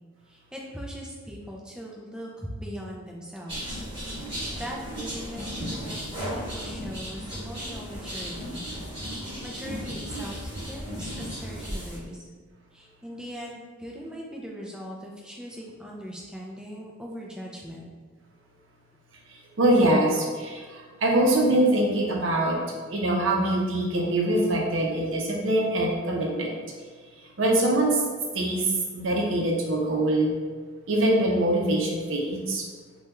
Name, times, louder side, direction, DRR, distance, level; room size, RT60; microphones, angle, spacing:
voice 1, 0.3-3.8 4.6-6.0 6.3-8.6 9.1-12.2 12.7-17.8, equal, 5° right, -3 dB, 0.3 m, -40 dB
sound 1, 3.5-12.0, equal, 25° right, 1.1 m, -35 dB
voice 2, 19.6-22.6 22.9-26.6 27.4-28.0 28.3-28.7 28.9-30.3 30.9-32.6, right 1 dB, 70° right, -1 dB, 0.6 m, -23 dB
3.3 x 2.2 x 2.9 m, 1.5 s
head